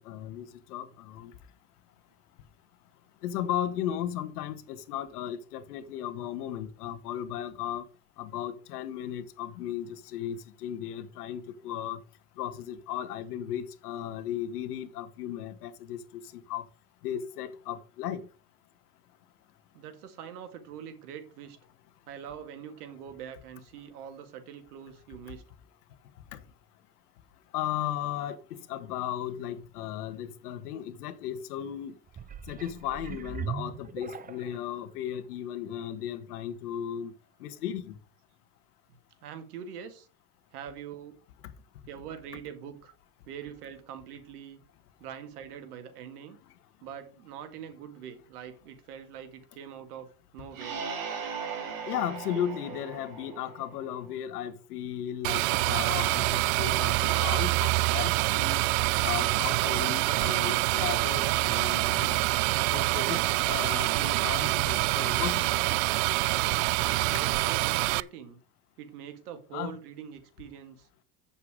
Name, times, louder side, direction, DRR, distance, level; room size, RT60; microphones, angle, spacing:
voice 1, 0.0-1.3 3.2-7.8 8.2-12.0 12.4-16.7 17.0-18.3 26.3-26.4 27.5-32.0 32.5-37.1 37.4-38.0 51.9-58.6 59.0-62.2 62.7-65.6 67.1-67.2 69.5-69.8, left 10 dB, 85° left, 1.4 m, -35 dB
voice 2, 19.7-21.6 22.1-25.4 39.2-40.1 40.5-41.2 41.9-42.9 43.3-44.6 45.0-46.4 46.8-50.8 66.8-68.4 68.8-70.9, right 8 dB, 80° right, 2.0 m, -44 dB
sound 1, 32.1-34.7 35.3-35.4, right 7 dB, 20° right, 0.7 m, -39 dB
sound 2, 50.5-54.1, right 6 dB, 45° right, 3.2 m, -38 dB
sound 3, 55.2-68.0, right 22 dB, 65° right, 0.5 m, -26 dB
8.4 x 7.0 x 4.8 m
supercardioid pair, 100°, 45 cm